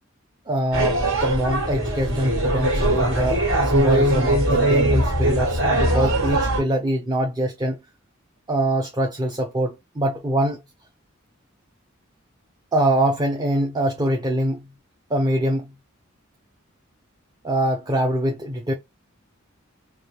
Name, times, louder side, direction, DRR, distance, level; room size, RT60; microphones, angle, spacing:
voice 1, 0.5-7.8 8.5-10.6 12.7-14.7 15.1-15.7 17.4-18.7, right 1 dB, 20° right, 0.6 m, -24 dB
sound 1, 0.7-6.6, right 1 dB, 70° right, 2.0 m, -21 dB
4.9 x 2.4 x 2.9 m
head